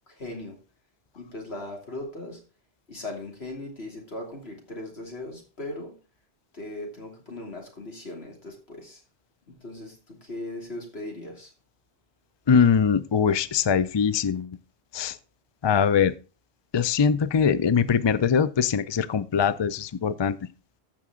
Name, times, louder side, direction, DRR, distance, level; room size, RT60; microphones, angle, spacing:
voice 1, 0.1-0.6 1.1-2.4 2.9-5.9 6.5-9.0 9.6-11.5, left 1 dB, 70° left, 1 dB, 3.2 m, -38 dB
voice 2, 12.5-14.5 14.9-15.1 15.6-16.1 16.7-20.4, left 7 dB, 45° left, 15 dB, 0.3 m, -22 dB
14.5 x 6.0 x 3.7 m, 0.33 s
omnidirectional pair, 1.1 m